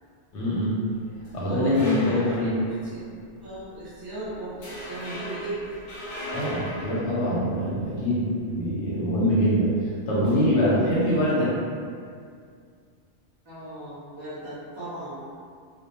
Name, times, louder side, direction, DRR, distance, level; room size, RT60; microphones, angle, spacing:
voice 1, 0.3-0.7 1.3-2.5 6.3-9.7 10.1-11.5, equal, 85° left, -7 dB, 1.0 m, -24 dB
sound 1, 0.9-3.1 3.6-3.8 4.1-4.3 4.6-8.1 10.2-11.1, equal, 55° left, 0.7 m, -38 dB
voice 2, 1.4-3.0 3.4-5.7 13.4-15.2, right 2 dB, 30° right, -13 dB, 0.4 m, -37 dB
2.4 x 2.0 x 2.7 m, 2.2 s
omnidirectional pair, 1.2 m